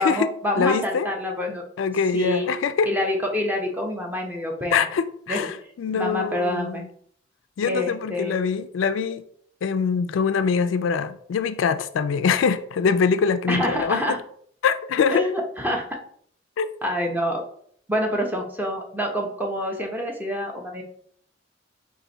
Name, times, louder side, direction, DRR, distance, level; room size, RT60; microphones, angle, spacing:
voice 1, 0.0-1.6 2.1-2.5 2.9-4.9 5.3-5.5 5.9-6.8 7.7-8.4 13.5-14.2 15.1-16.0 16.8-17.4 17.9-20.8, left 1 dB, 10° right, 0.7 m, -26 dB
voice 2, 0.6-1.1 1.8-2.9 4.7-6.9 7.6-9.2 9.6-14.2 14.6-15.2 16.6-16.7, left 6 dB, 85° left, 0.3 m, -23 dB
4.8 x 2.6 x 3.9 m
head